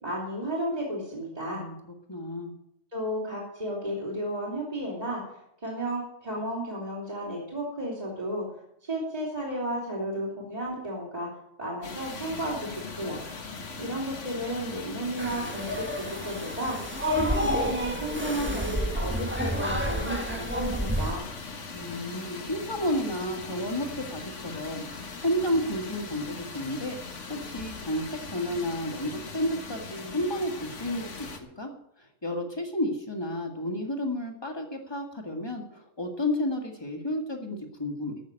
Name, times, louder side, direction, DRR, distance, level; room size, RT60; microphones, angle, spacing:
voice 1, 0.0-1.6 2.9-5.2 5.6-8.5 8.8-11.3 11.6-13.2 13.8-16.8 17.1-21.2, right 1 dB, 30° right, -5 dB, 3.1 m, -33 dB
voice 2, 1.5-2.5 21.7-27.0 27.3-31.7 32.0-38.2, left 1 dB, 20° left, 2 dB, 2.1 m, -31 dB
sound 1, 11.8-31.4, left 4 dB, 75° left, 1.8 m, -40 dB
sound 2, 15.2-21.1, equal, 10° right, 1.3 m, -30 dB
14.0 x 6.6 x 8.9 m, 0.78 s
omnidirectional pair, 1.3 m